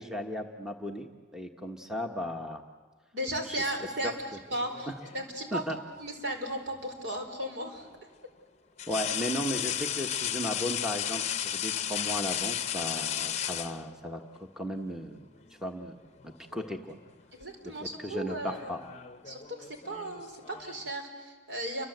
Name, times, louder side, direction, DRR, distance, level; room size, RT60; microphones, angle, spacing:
voice 1, 0.0-2.6 3.5-4.1 5.5-5.8 8.9-14.2 14.6-15.2 15.6-16.0 16.2-16.9 17.6-18.8, equal, 5° right, 4 dB, 1.2 m, -36 dB
voice 2, 3.1-4.1 4.5-5.6 6.0-7.9 17.3-18.9 19.3-21.8, right 1 dB, 65° right, 4 dB, 4.8 m, -36 dB
sound 1, 4.5-5.3 7.1-7.3 8.8-14.3 15.4-15.7 16.0-16.8 17.1-17.4 18.3-20.9, left 10 dB, 35° left, 0.8 m, -34 dB
30.0 x 24.5 x 8.0 m, 1.5 s
head